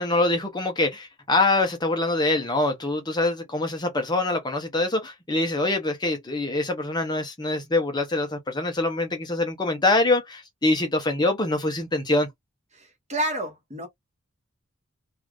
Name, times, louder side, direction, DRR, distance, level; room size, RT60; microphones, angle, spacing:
voice 1, 0.0-12.3, left 2 dB, 20° left, 0.6 m, -24 dB
voice 2, 12.7-13.9, right 1 dB, 30° right, 1.1 m, -30 dB
2.4 x 2.4 x 3.3 m
head